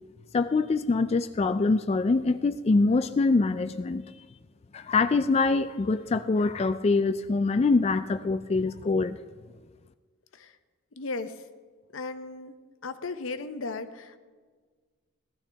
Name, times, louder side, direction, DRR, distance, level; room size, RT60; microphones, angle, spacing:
voice 1, 0.3-4.0 4.7-9.2, left 3 dB, 30° left, 10 dB, 0.3 m, -24 dB
voice 2, 11.0-11.4 11.9-12.5 12.8-14.2, left 3 dB, 80° left, 10 dB, 0.8 m, -36 dB
18.0 x 13.0 x 3.4 m, 1.5 s
head